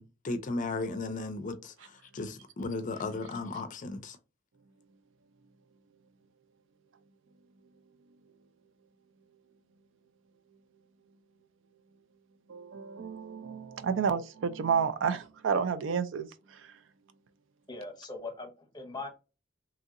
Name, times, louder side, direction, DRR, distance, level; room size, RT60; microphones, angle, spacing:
voice 1, 0.2-4.2, left 3 dB, 40° left, 0.4 m, -35 dB
voice 2, 12.5-16.6, right 6 dB, 70° right, 0.4 m, -31 dB
voice 3, 17.7-19.1, left 3 dB, 20° left, 0.8 m, -40 dB
2.9 x 2.7 x 2.5 m
head